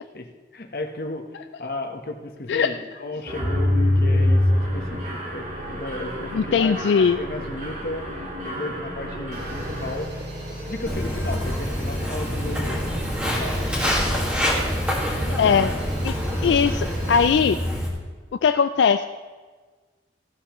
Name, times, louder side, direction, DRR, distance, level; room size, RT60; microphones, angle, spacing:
voice 1, 0.5-1.3 1.6-5.0 5.3-10.2 10.6-12.9 13.2-14.3 15.2-15.4 15.9-16.2, left 2 dB, 55° left, 4 dB, 1.0 m, -34 dB
Mechanisms, 3.3-10.0, left 1 dB, 45° right, 2.3 m, -25 dB
voice 2, 6.3-7.2 15.4-15.7 16.0-16.2 16.4-17.6 18.4-19.1, left 6 dB, 85° left, 9 dB, 0.3 m, -19 dB
sound 1, 9.3-17.3, equal, 65° right, 2.6 m, -34 dB
Walk footsteps, 10.9-17.9, equal, 5° right, 1.7 m, -26 dB
15.0 x 11.5 x 3.0 m, 1.4 s
head